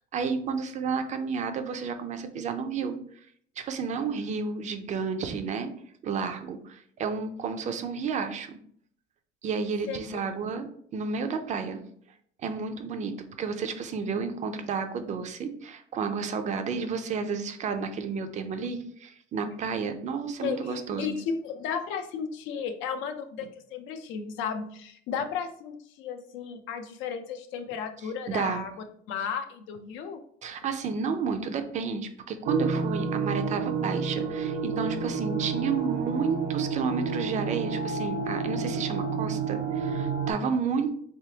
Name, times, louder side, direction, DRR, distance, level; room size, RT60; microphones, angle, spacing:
voice 1, 0.1-3.0 3.6-5.7 6.0-8.6 9.4-11.8 12.4-21.2 28.0-28.6 30.4-40.9, right 5 dB, 40° right, 8 dB, 0.4 m, -31 dB
voice 2, 9.9-10.2 20.4-28.7 29.1-30.2, left 6 dB, 85° left, 8 dB, 0.6 m, -34 dB
sound 1, 32.5-40.3, right 5 dB, 80° right, 0.6 m, -30 dB
3.7 x 3.4 x 2.8 m, 0.62 s
cardioid pair, 155°, 20 cm